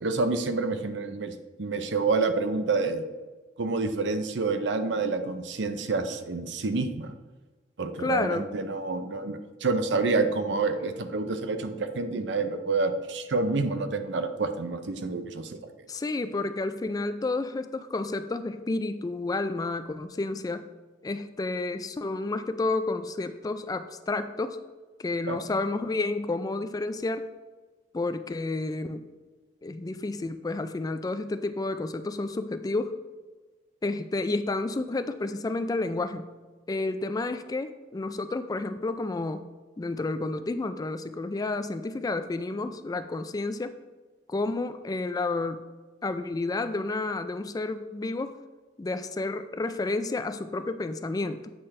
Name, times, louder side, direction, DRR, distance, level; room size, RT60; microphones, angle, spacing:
voice 1, 0.0-3.1 3.6-7.1 7.8-15.7 25.3-25.4, right 3 dB, 70° right, 8 dB, 0.6 m, -28 dB
voice 2, 8.0-8.5 15.9-20.7 21.0-24.6 25.0-27.3 27.9-29.1 29.6-32.9 33.8-36.2 36.7-39.4 39.8-43.8 44.3-45.6 46.0-48.4 48.8-51.5, left 2 dB, 20° left, 10 dB, 0.3 m, -30 dB
8.6 x 5.7 x 3.2 m, 1.3 s
head